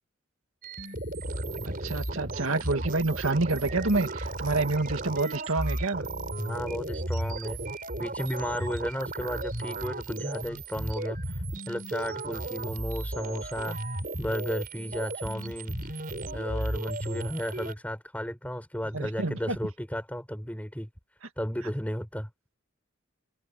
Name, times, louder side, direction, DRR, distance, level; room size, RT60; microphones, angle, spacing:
sound 1, 0.6-17.7, right 2 dB, 40° right, 6.0 m, -35 dB
voice 1, 1.7-6.1 18.9-19.6, right 3 dB, 75° right, 2.0 m, -28 dB
voice 2, 6.4-7.6 8.0-13.8 14.2-16.0 16.3-20.9 21.4-22.3, equal, 5° left, 6.0 m, -34 dB
head